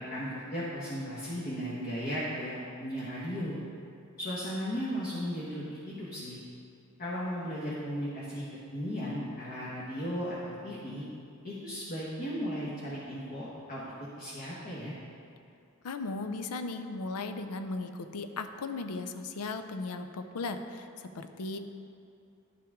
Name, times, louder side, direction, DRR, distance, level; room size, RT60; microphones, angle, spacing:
voice 1, 0.1-3.6 4.2-6.4 7.0-8.4 8.7-11.0 11.4-14.9, equal, 40° left, -7 dB, 1.2 m, -36 dB
voice 2, 15.8-21.6, left 3 dB, 85° left, 8 dB, 0.5 m, -37 dB
11.0 x 5.9 x 3.6 m, 2.6 s
head